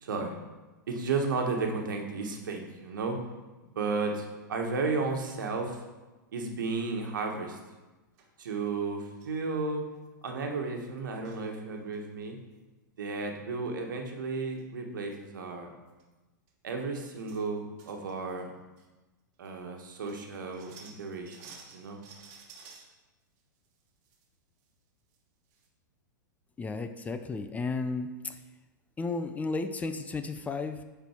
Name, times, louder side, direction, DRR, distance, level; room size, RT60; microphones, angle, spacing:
voice 1, 0.0-0.4 0.9-3.2 3.6-5.8 6.3-7.6 8.4-9.8 10.2-12.4 13.0-15.7 16.6-18.5 19.4-22.0, right 4 dB, 75° right, 3 dB, 1.4 m, -33 dB
sound 1, 7.2-7.6 8.2-8.3 9.2-9.4 9.8-9.9 10.1-10.3 11.0-11.5 11.8-12.3 14.0-14.1 14.4-14.6 15.0-15.1 15.9-16.0 16.5-16.6 16.9-17.4 17.8-18.4 18.8-18.9 19.5-19.6 19.9-22.9 23.4-24.3 24.6-24.7 25.1-25.2 25.5-25.7, right 5 dB, 50° right, 1.4 m, -54 dB
voice 2, 26.6-28.3 29.0-30.8, left 3 dB, 15° left, 8 dB, 0.5 m, -33 dB
9.5 x 4.4 x 4.5 m, 1.1 s
hypercardioid pair, 110°, 11 cm